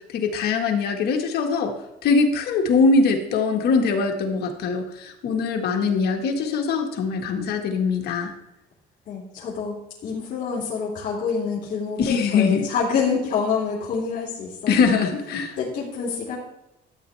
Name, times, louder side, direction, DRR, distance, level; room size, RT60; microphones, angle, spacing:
voice 1, 0.1-1.7 2.0-8.3 12.0-12.7 14.7-15.6, left 4 dB, 70° left, 3 dB, 1.9 m, -22 dB
voice 2, 9.1-15.0 15.6-16.4, left 5 dB, 55° left, -5 dB, 3.0 m, -27 dB
13.5 x 8.4 x 3.5 m, 0.88 s
cardioid pair, 110°, 17 cm